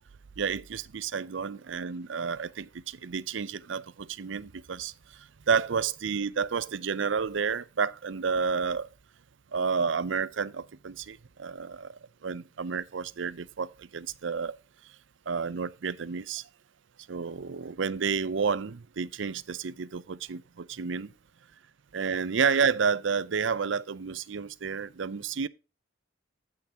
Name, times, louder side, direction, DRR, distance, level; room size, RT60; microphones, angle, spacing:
voice 1, 0.4-4.9 5.5-8.9 9.5-11.9 12.2-13.7 13.9-14.6 15.3-16.4 17.1-21.1 21.9-25.5, right 6 dB, 75° right, 0.6 m, -30 dB
14.5 x 5.8 x 2.8 m
head